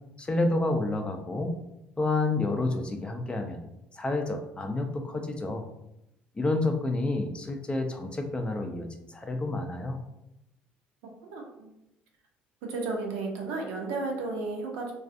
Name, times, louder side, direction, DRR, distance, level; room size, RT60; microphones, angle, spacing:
voice 1, 0.2-1.5 2.0-3.6 3.9-5.7 6.3-10.0, left 2 dB, 20° left, 5 dB, 0.4 m, -29 dB
voice 2, 11.3-11.7 12.6-14.9, right 3 dB, 75° right, 1 dB, 0.6 m, -33 dB
2.3 x 2.3 x 2.5 m, 0.85 s
hypercardioid pair, 70°, 5 cm